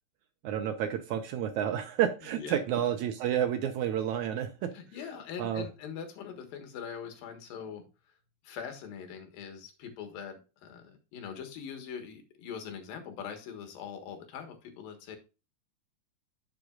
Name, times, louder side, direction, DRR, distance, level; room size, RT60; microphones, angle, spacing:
voice 1, 0.4-4.7 5.4-5.6, right 10 dB, 75° right, 8 dB, 1.8 m, -30 dB
voice 2, 2.2-2.6 4.7-7.9 8.4-15.2, left 7 dB, 85° left, 5 dB, 3.3 m, -42 dB
10.5 x 6.4 x 2.4 m, 0.30 s
omnidirectional pair, 4.0 m